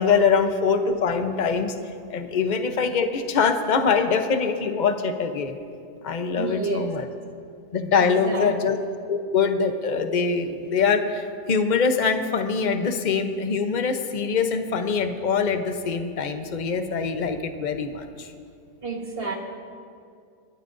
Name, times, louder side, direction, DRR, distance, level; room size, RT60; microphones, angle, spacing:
voice 1, 0.0-1.7 2.1-5.6 6.0-7.1 7.7-8.8 9.1-18.3, left 5 dB, 45° left, 7 dB, 0.6 m, -23 dB
voice 2, 6.3-6.9 8.0-8.6 18.8-19.3, right 4 dB, 35° right, 0 dB, 1.6 m, -30 dB
28.0 x 13.0 x 2.6 m, 2.3 s
omnidirectional pair, 1.9 m